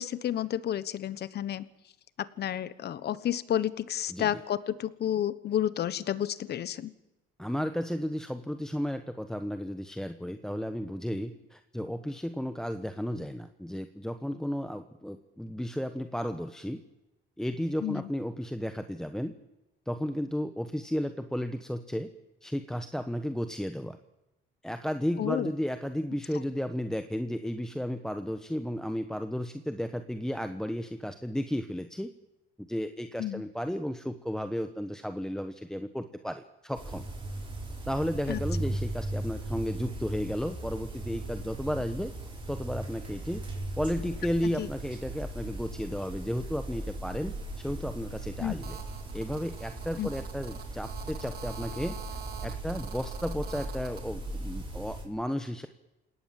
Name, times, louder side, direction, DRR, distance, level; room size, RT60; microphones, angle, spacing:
voice 1, 0.0-1.7 2.2-6.9 17.8-18.1 25.2-25.5 33.2-33.4 38.3-38.4 44.6-44.7 48.4-48.5 50.0-50.1, left 11 dB, 50° left, 16 dB, 1.2 m, -31 dB
voice 2, 4.1-4.4 7.4-16.8 17.4-19.3 19.9-22.1 22.4-24.0 24.6-32.1 32.6-37.0 37.9-42.1 42.5-43.4 43.7-48.8 49.1-52.0 52.4-55.7, equal, 5° left, 8 dB, 1.1 m, -33 dB
sound 1, 36.8-55.0, right 2 dB, 25° right, 7.3 m, -38 dB
Telephone, 48.6-54.0, right 7 dB, 50° right, 2.7 m, -46 dB
28.5 x 18.0 x 7.6 m, 0.96 s
cardioid pair, 115°, 21 cm